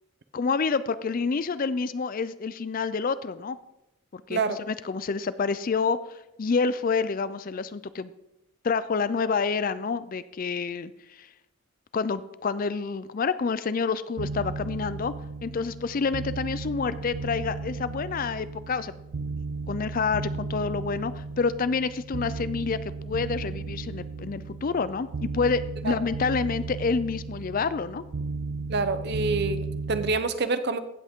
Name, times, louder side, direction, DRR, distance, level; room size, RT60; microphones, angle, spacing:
voice 1, 0.3-3.6 4.1-8.1 8.6-11.3 11.9-15.1 15.4-18.9 19.7-22.8 23.0-25.1 25.3-28.0, left 5 dB, 40° left, 15 dB, 0.4 m, -28 dB
sound 1, 14.2-30.1, right 4 dB, 85° right, 0.6 m, -35 dB
voice 2, 28.7-30.8, right 3 dB, 50° right, 11 dB, 0.7 m, -27 dB
15.5 x 8.0 x 3.6 m, 0.89 s
head